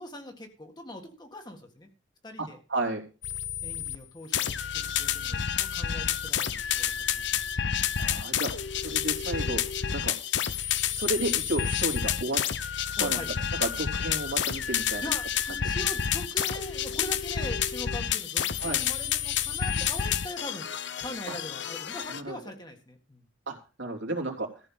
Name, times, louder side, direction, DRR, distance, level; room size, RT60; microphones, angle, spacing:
voice 1, 0.0-1.9 2.2-2.6 3.6-7.9 8.9-9.1 13.0-13.3 15.0-20.7 21.0-23.2, left 1 dB, 20° left, 4 dB, 1.8 m, -42 dB
voice 2, 2.4-3.0 8.0-8.5 8.8-9.6 9.9-10.2 10.9-12.4 13.0-13.2 13.6-15.0 18.6-18.8 21.3-21.4 22.1-22.4 23.5-24.5, right 2 dB, 70° right, 1 dB, 3.0 m, -32 dB
sound 1, 3.2-4.0 4.3-22.2, left 9 dB, 65° left, 0.7 m, -29 dB
14.5 x 5.6 x 7.4 m, 0.34 s
head